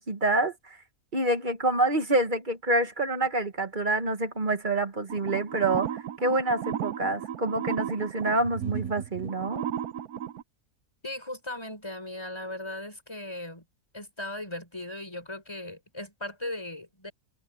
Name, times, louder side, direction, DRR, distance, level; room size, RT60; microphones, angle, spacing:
voice 1, 0.1-0.5 1.1-9.6, right 2 dB, 30° right, 1.6 m, -27 dB
sound 1, 5.1-10.4, right 9 dB, 75° right, 1.3 m, -34 dB
voice 2, 11.0-13.6 13.9-17.1, left 1 dB, 15° left, 5.8 m, -38 dB
omnidirectional pair, 1.6 m